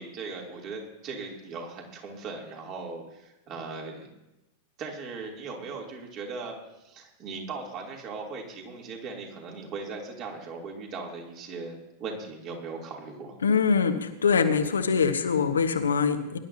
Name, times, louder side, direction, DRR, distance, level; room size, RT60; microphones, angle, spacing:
voice 1, 0.0-4.1 4.8-6.5 6.8-13.3, right 4 dB, 35° right, 0 dB, 3.2 m, -38 dB
voice 2, 13.4-16.4, left 5 dB, 70° left, 8 dB, 1.3 m, -23 dB
23.5 x 11.5 x 2.9 m, 0.94 s
figure-of-eight pair, 90°, 0 cm